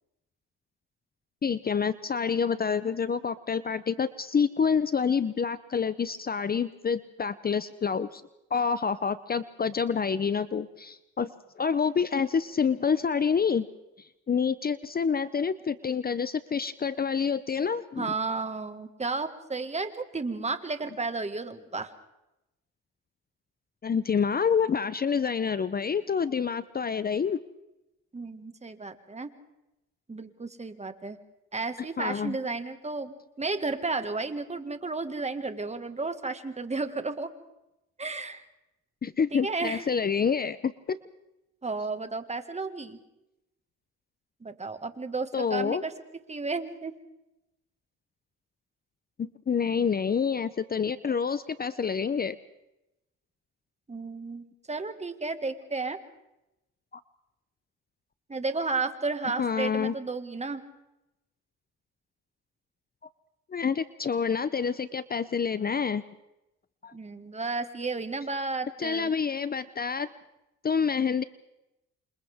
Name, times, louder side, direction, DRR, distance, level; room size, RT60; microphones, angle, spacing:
voice 1, 1.4-8.2 8.5-13.7 14.0-18.1 23.8-27.4 32.0-32.4 39.0-41.0 45.3-45.8 49.2-52.4 56.9-57.0 59.4-59.9 63.5-66.0 66.8-66.9 68.8-70.1 70.6-71.2, left 6 dB, 30° left, 15 dB, 0.7 m, -27 dB
voice 2, 18.0-21.9 28.1-29.3 30.1-31.2 31.5-37.3 38.0-38.4 39.3-39.9 41.6-43.0 44.4-45.9 46.3-47.0 53.9-56.0 58.3-60.6 66.9-69.1, right 3 dB, 20° right, 9 dB, 1.9 m, -33 dB
28.0 x 26.5 x 3.6 m, 0.92 s
cardioid pair, 90°, 30 cm